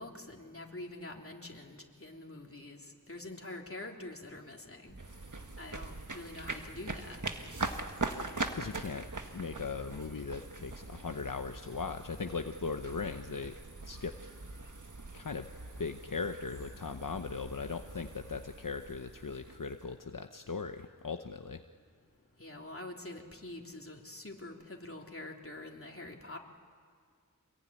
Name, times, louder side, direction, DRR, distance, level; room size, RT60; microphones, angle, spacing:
voice 1, 0.0-4.9 5.6-7.2 22.4-26.4, left 2 dB, 40° left, 1 dB, 3.4 m, -46 dB
sound 1, 4.9-20.0, right 3 dB, 65° right, 1.6 m, -42 dB
voice 2, 8.5-9.1 9.3-13.6 13.8-14.2 15.1-15.5 15.8-21.6, left 5 dB, 75° left, 7 dB, 0.9 m, -39 dB
27.0 x 21.5 x 9.8 m, 2.1 s
wide cardioid pair, 45°, 33 cm